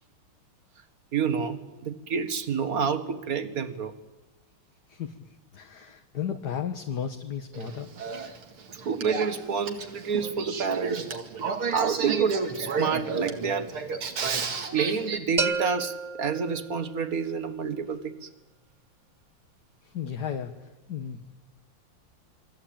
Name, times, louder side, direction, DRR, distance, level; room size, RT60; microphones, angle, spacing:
voice 1, 1.1-3.9 8.9-11.2 11.7-13.7 14.7-18.3, right 6 dB, 45° right, 10 dB, 2.0 m, -28 dB
voice 2, 5.5-7.9 19.9-20.5 20.9-21.2, left 8 dB, 55° left, 5 dB, 1.8 m, -33 dB
Male speech man speaking / Female speech woman speaking / Conversation, 7.5-15.2, right 5 dB, 80° right, 2.9 m, -32 dB
sound 1, 15.4-17.2, right 4 dB, 25° right, 1.0 m, -31 dB
28.5 x 22.5 x 8.8 m, 1.1 s
omnidirectional pair, 2.4 m